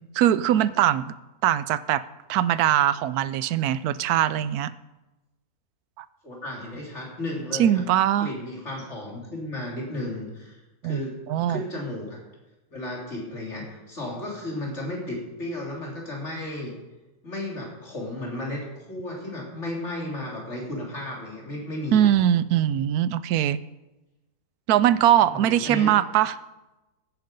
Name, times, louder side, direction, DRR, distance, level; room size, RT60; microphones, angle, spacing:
voice 1, 0.1-1.1 1.4-2.0 2.3-4.7 6.0-6.1 7.6-8.3 10.8-11.0 11.3-11.6 21.9-23.6 24.7-26.4, right 11 dB, 80° right, 16 dB, 1.1 m, -21 dB
voice 2, 6.2-7.8 8.2-11.2 11.5-12.2 12.7-16.7 17.2-22.1 25.3-25.9, left 1 dB, 45° left, -2 dB, 3.7 m, -34 dB
15.5 x 9.5 x 5.3 m, 1.0 s
omnidirectional pair, 1.6 m